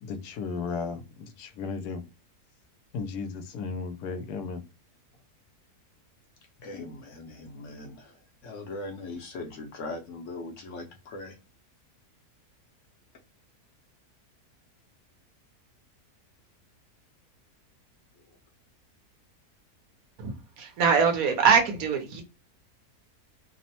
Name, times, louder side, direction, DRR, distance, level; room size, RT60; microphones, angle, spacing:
voice 1, 0.0-2.0 2.9-4.6, left 5 dB, 85° left, 1.1 m, -35 dB
voice 2, 6.6-8.2 8.4-11.4, left 2 dB, 65° left, 0.9 m, -40 dB
voice 3, 20.2-22.2, right 6 dB, 70° right, 1.1 m, -23 dB
2.9 x 2.0 x 2.8 m
omnidirectional pair, 1.6 m